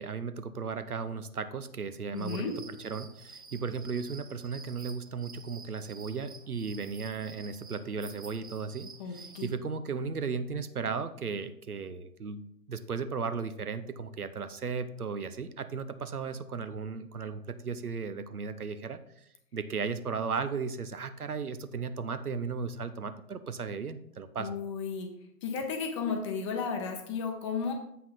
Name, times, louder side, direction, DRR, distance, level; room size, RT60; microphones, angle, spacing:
voice 1, 0.0-2.5 2.8-19.0 19.5-24.6, right 5 dB, 80° right, 11 dB, 0.7 m, -35 dB
voice 2, 2.1-2.5 9.0-9.5 24.4-25.1 25.4-27.7, left 5 dB, 20° left, 4 dB, 0.7 m, -33 dB
sound 1, 2.1-9.6, right 4 dB, 25° right, 0.4 m, -51 dB
7.6 x 5.6 x 4.1 m, 0.75 s
figure-of-eight pair, 120°, 44 cm